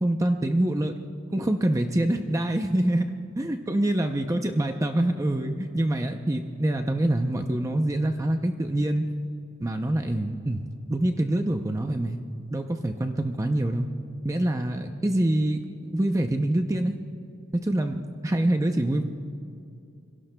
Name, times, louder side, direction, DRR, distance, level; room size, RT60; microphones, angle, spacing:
voice 1, 0.0-0.9 1.3-3.1 3.4-9.1 9.6-10.6 10.9-12.2 12.5-13.9 14.2-16.9 17.6-19.0, right 1 dB, 15° right, 5 dB, 0.5 m, -25 dB
28.5 x 23.0 x 2.2 m, 2.5 s
head